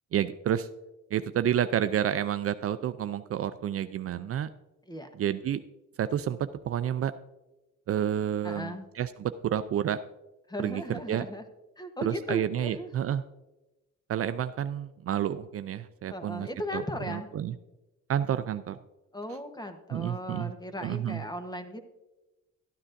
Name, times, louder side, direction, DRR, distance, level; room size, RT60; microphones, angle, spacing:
voice 1, 0.1-0.7 1.1-4.5 5.2-5.6 6.0-7.1 7.9-10.0 10.6-11.3 12.0-13.2 14.1-16.5 16.7-16.8 17.1-17.5 18.1-18.8 19.9-20.5 20.8-21.2, right 10 dB, 50° right, 12 dB, 0.4 m, -30 dB
voice 2, 8.4-8.8 10.5-11.4 11.8-12.9 16.1-17.3 19.1-21.8, left 1 dB, 15° left, 7 dB, 1.1 m, -37 dB
12.5 x 9.8 x 2.6 m, 1.0 s
cardioid pair, 90°, 30 cm